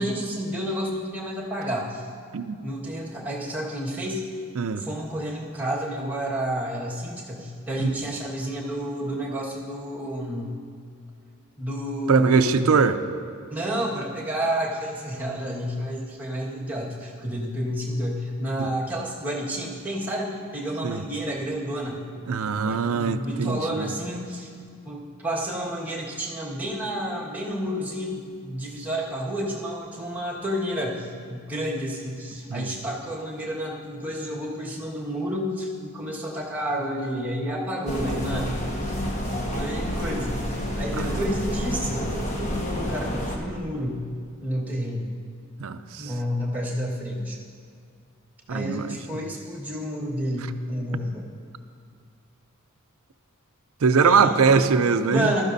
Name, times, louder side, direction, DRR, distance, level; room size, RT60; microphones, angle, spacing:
voice 1, 0.0-2.1 2.6-4.3 4.8-10.5 11.6-12.6 13.5-22.3 22.6-24.5 24.8-38.5 38.8-38.9 39.5-40.4 40.8-42.1 42.8-44.0 44.4-45.1 46.0-47.4 48.5-51.2 54.0-54.4 55.1-55.4, equal, 5° right, -5 dB, 1.6 m, -30 dB
voice 2, 4.6-4.9 7.8-7.9 12.1-13.0 18.6-18.7 20.8-21.0 22.3-23.9 32.5-32.8 40.9-41.2 45.6-46.1 48.5-49.2 53.8-55.3, right 5 dB, 70° right, 11 dB, 0.5 m, -22 dB
sound 1, 37.9-43.4, equal, 30° left, 1.3 m, -29 dB
15.0 x 12.5 x 2.7 m, 2.2 s
head